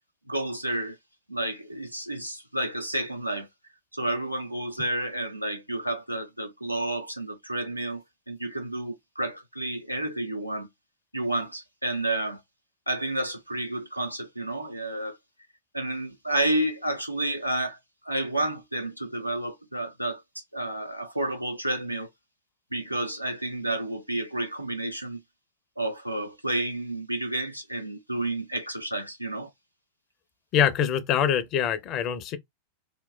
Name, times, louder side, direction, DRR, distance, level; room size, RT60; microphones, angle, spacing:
voice 1, 0.3-1.0 1.3-3.5 3.9-10.7 11.1-12.4 12.9-15.2 15.7-17.8 18.0-22.1 22.7-25.2 25.8-29.5, right 1 dB, 90° right, 0.4 m, -30 dB
voice 2, 30.5-32.4, left 9 dB, 35° left, 0.4 m, -24 dB
2.9 x 2.0 x 2.2 m
figure-of-eight pair, 90°, 0 cm